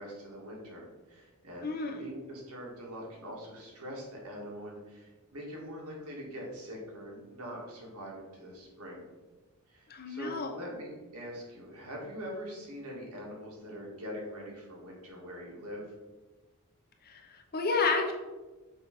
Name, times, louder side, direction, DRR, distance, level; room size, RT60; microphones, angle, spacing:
voice 1, 0.0-9.0 9.7-15.9, equal, 85° right, -2 dB, 1.8 m, -43 dB
voice 2, 1.6-2.0 9.9-10.6 17.0-18.1, left 4 dB, 45° left, 2 dB, 0.8 m, -31 dB
6.2 x 3.1 x 5.1 m, 1.2 s
head